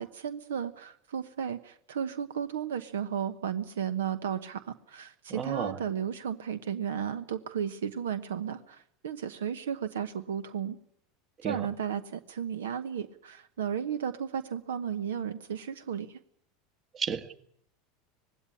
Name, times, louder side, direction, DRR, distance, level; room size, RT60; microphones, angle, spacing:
voice 1, 0.0-10.8 11.4-16.2, right 8 dB, 80° right, 13 dB, 1.0 m, -34 dB
voice 2, 5.3-5.8 11.4-11.7 16.9-17.3, right 7 dB, 35° right, 11 dB, 1.7 m, -33 dB
19.5 x 16.5 x 10.0 m, 0.70 s
hypercardioid pair, 85°, 0 cm